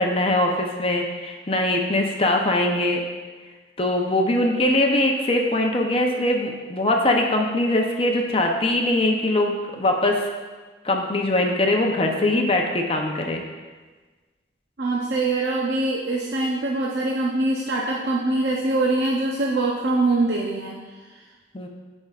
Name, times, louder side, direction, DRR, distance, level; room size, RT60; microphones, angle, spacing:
voice 1, 0.0-3.0 3.8-10.2 10.8-13.4 21.5-21.7, left 1 dB, 30° left, 2 dB, 0.7 m, -22 dB
voice 2, 14.8-20.8, right 2 dB, 65° right, -2 dB, 0.7 m, -23 dB
15.5 x 5.4 x 2.4 m, 1.3 s
head